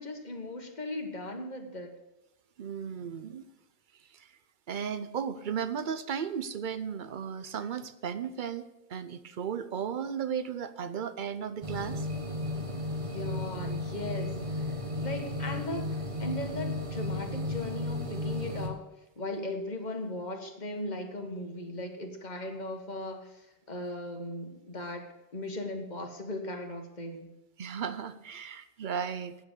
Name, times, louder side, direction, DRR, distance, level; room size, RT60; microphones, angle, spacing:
voice 1, 0.0-2.0 13.1-18.9 19.2-27.3, left 1 dB, 45° left, 4 dB, 1.5 m, -38 dB
voice 2, 2.6-3.5 4.1-4.3 4.7-12.1 27.6-29.4, right 7 dB, 55° right, 12 dB, 0.8 m, -35 dB
sound 1, 11.6-18.7, left 1 dB, 30° right, 1.3 m, -34 dB
9.0 x 7.8 x 6.6 m, 0.95 s
omnidirectional pair, 1.0 m